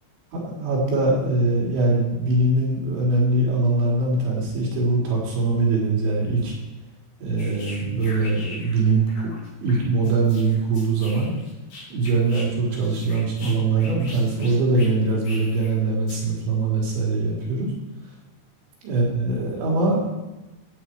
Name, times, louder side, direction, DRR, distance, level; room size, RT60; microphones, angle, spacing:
voice 1, 0.3-6.5 7.2-9.3 9.6-11.3 11.9-17.7 18.8-20.0, right 3 dB, 85° right, -3 dB, 5.9 m, -22 dB
sound 1, 7.4-8.8 9.1-12.5 12.7-15.7 16.1-16.3, left 2 dB, 70° left, 5.7 m, -41 dB
14.5 x 9.5 x 4.6 m, 1.1 s
omnidirectional pair, 5.2 m